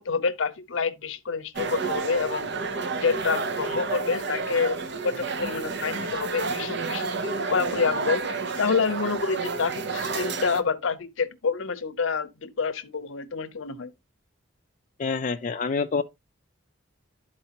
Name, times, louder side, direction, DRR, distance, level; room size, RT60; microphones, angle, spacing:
voice 1, 0.0-2.5 2.9-13.9, left 5 dB, 70° left, 0.6 m, -28 dB
sound 1, 1.6-10.6, right 4 dB, 55° right, 0.7 m, -30 dB
voice 2, 15.0-16.0, left 4 dB, 40° left, 0.3 m, -27 dB
11.5 x 4.3 x 2.8 m
head